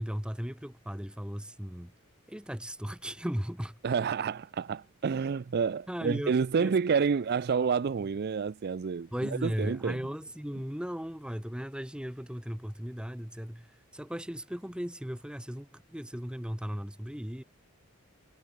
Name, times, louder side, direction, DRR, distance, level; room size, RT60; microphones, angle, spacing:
voice 1, 0.0-1.9 2.3-3.8 5.9-6.8 9.1-17.4, equal, 5° right, 1.0 m, -37 dB
voice 2, 3.8-9.1 9.4-10.0, right 6 dB, 50° right, 0.4 m, -29 dB
head